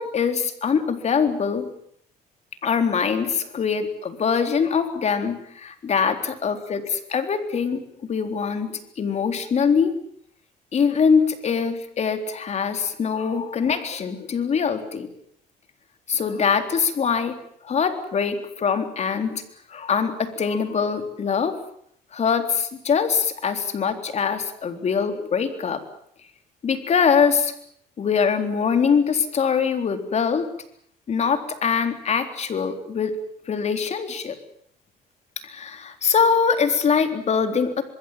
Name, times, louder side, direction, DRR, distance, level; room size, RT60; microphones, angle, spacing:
voice 1, 0.0-1.7 2.6-7.8 8.1-9.9 10.7-15.1 16.1-17.4 17.6-19.4 19.7-21.6 22.1-25.8 26.6-27.5 28.0-30.5 31.1-33.1 33.5-34.4 35.4-37.8, left 6 dB, 40° left, 7 dB, 3.7 m, -23 dB
26.5 x 21.0 x 7.5 m, 0.67 s
cardioid pair, 110°, 17 cm